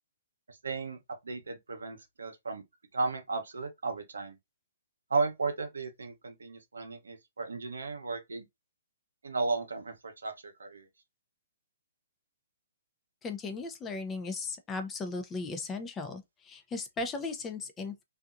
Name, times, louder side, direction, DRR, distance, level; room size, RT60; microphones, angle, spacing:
voice 1, 0.5-2.6 2.9-4.4 5.1-8.4 9.2-10.9, right 3 dB, 85° right, 0.8 m, -34 dB
voice 2, 13.2-18.0, left 3 dB, 15° left, 0.6 m, -37 dB
2.7 x 2.4 x 2.5 m
hypercardioid pair, 135°, 0 cm